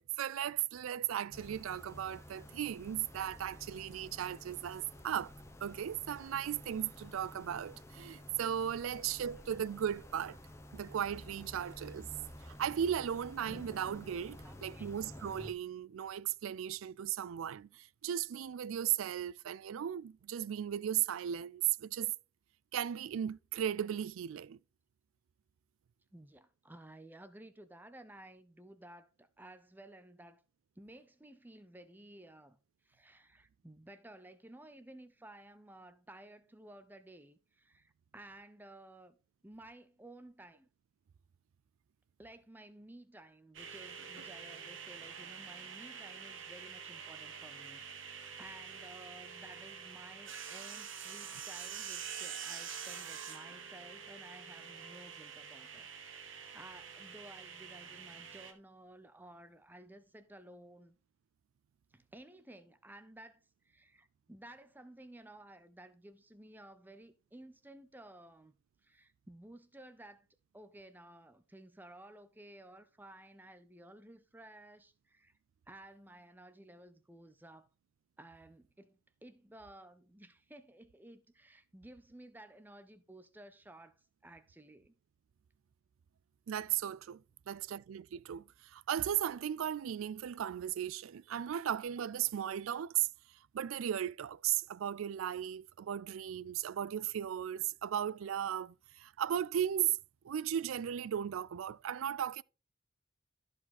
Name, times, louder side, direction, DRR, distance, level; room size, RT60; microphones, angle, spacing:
voice 1, 0.0-5.3 5.6-10.4 10.7-12.1 12.5-22.1 22.7-24.6 86.5-93.1 93.5-100.0 100.2-102.4, right 10 dB, 90° right, 0.4 m, -36 dB
sound 1, 1.3-15.5, left 1 dB, 15° left, 1.0 m, -51 dB
voice 2, 14.4-14.9 26.1-30.4 30.8-32.6 32.8-39.2 39.4-40.7 42.2-61.0 61.9-68.5 68.8-70.3 70.5-75.3 75.7-77.7 78.2-84.9 87.5-87.8, right 1 dB, 10° right, 0.6 m, -55 dB
sound 2, 43.5-58.5, right 7 dB, 70° right, 1.5 m, -46 dB
13.0 x 5.0 x 4.2 m
head